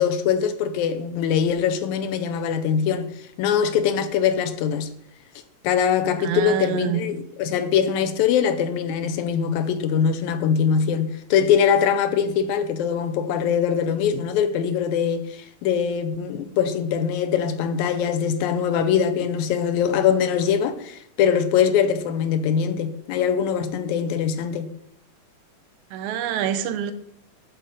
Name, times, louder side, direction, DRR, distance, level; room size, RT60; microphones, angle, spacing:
voice 1, 0.0-3.1 3.4-4.9 5.6-15.3 15.6-24.7, left 7 dB, 85° left, 2.0 m, -22 dB
voice 2, 6.2-7.0 25.9-26.9, right 10 dB, 85° right, 2.0 m, -26 dB
8.2 x 3.7 x 5.3 m
omnidirectional pair, 3.4 m